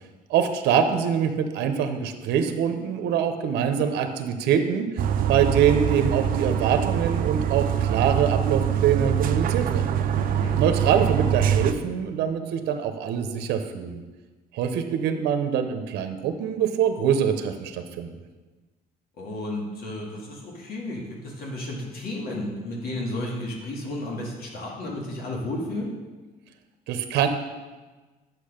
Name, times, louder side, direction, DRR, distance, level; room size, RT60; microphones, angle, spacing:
voice 1, 0.3-5.0 5.3-9.9 10.5-14.0 14.5-18.1 26.9-27.3, right 8 dB, 80° right, 8 dB, 0.8 m, -24 dB
sound 1, 5.0-11.7, right 9 dB, 55° right, 0.5 m, -24 dB
voice 2, 10.1-10.6 19.2-25.9, left 1 dB, 65° left, -2 dB, 2.1 m, -33 dB
8.4 x 6.2 x 5.1 m, 1.3 s
cardioid pair, 110°, 17 cm